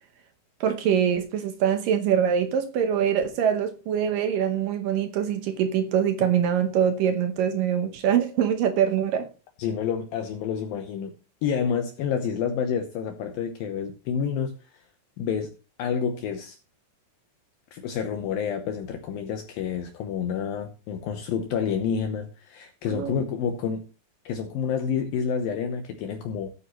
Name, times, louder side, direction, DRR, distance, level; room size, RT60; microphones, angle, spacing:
voice 1, 0.6-9.3 22.9-23.2, right 8 dB, 70° right, 2.2 m, -24 dB
voice 2, 9.6-11.1 11.4-14.7 15.2-15.5 15.8-16.6 17.7-23.9 24.3-26.5, left 7 dB, 75° left, 2.4 m, -29 dB
15.5 x 9.3 x 3.0 m
omnidirectional pair, 4.8 m